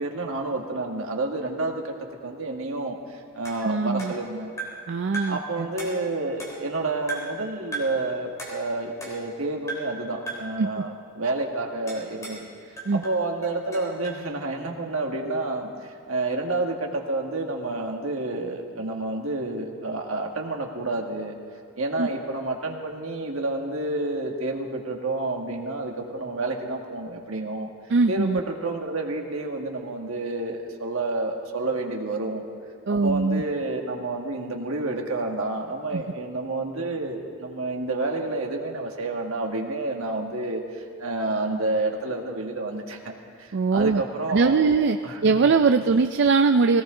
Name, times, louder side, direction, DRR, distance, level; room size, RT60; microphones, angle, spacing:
voice 1, 0.0-1.9 2.2-4.6 5.2-21.4 21.8-27.7 28.1-32.4 32.9-43.1 43.4-44.7 45.0-45.3, right 2 dB, 75° right, 2 dB, 1.7 m, -29 dB
sound 1, 3.5-4.9 5.1-5.5 5.8-6.8 7.1-7.4 7.7-8.0 8.4-9.4 9.7-10.0 10.3-10.6 11.9-12.5 12.8-14.2, right 3 dB, 15° left, 3.5 m, -37 dB
voice 2, 3.6-4.1 4.9-5.4 10.6-10.8 12.9-13.0 22.0-22.1 27.9-28.4 32.9-33.4 35.9-36.0 43.5-44.0 44.3-45.0 45.2-46.8, right 4 dB, 55° right, 7 dB, 0.4 m, -21 dB
20.0 x 18.0 x 3.8 m, 2.4 s
head